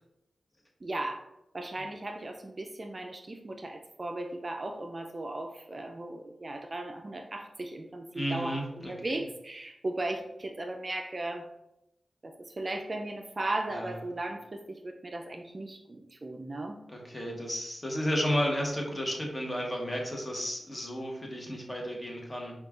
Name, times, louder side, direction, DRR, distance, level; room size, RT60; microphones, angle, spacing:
voice 1, 0.8-1.2 1.5-11.5 12.2-16.8, right 2 dB, 40° right, 4 dB, 0.3 m, -37 dB
voice 2, 8.1-9.2 13.7-13.9 16.9-22.5, equal, 25° left, 0 dB, 0.9 m, -33 dB
5.2 x 2.3 x 2.3 m, 0.87 s
cardioid pair, 55°, 0 cm